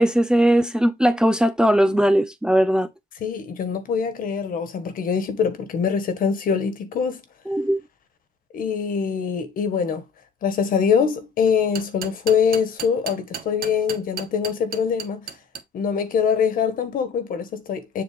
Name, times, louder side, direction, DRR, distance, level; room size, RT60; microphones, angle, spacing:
voice 1, 0.0-2.9 7.5-7.8, right 1 dB, 5° right, 0.6 m, -19 dB
voice 2, 3.2-7.2 8.5-10.0 10.4-15.2 15.7-18.0, left 6 dB, 55° left, 1.7 m, -23 dB
sound 1, 11.5-15.6, right 8 dB, 60° right, 1.1 m, -33 dB
7.4 x 3.0 x 5.1 m
cardioid pair, 110°, 17 cm